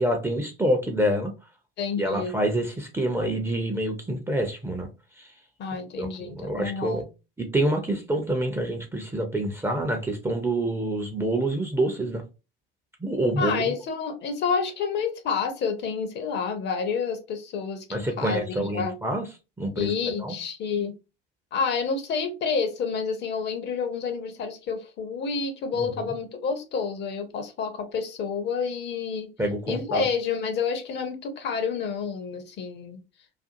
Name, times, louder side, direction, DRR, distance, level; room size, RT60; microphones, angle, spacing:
voice 1, 0.0-1.3 2.0-4.9 5.2-5.3 6.0-7.0 7.4-12.2 13.0-13.7 17.9-19.2 19.6-20.3 25.8-26.1 29.4-30.0, right 1 dB, 10° right, 0.5 m, -27 dB
voice 2, 1.8-2.3 5.6-7.0 13.4-17.8 18.2-18.9 19.8-20.9 21.5-29.3 29.7-33.0, left 5 dB, 35° left, 0.6 m, -29 dB
2.5 x 2.4 x 2.6 m
figure-of-eight pair, 75°, 30 cm